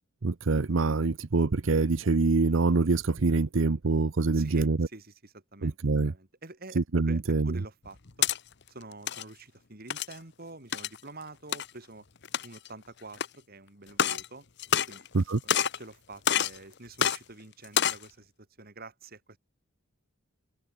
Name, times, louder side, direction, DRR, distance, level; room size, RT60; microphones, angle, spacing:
voice 1, 0.2-4.9 5.6-6.1 6.8-7.5 15.1-15.4, right 3 dB, 65° right, 0.7 m, -25 dB
voice 2, 4.3-5.8 6.0-8.3 8.7-12.1 12.4-14.5 14.9-15.1 15.4-19.4, right 2 dB, 45° right, 2.8 m, -47 dB
sound 1, 7.9-8.4 8.9-9.2 9.9-10.2 10.7-11.0 11.5-11.7 12.2-12.7 13.2-13.3 13.9-14.3 14.6-15.2 15.5-15.8 16.3-16.6 17.0-17.2 17.6-18.0, left 9 dB, 55° left, 1.1 m, -27 dB
head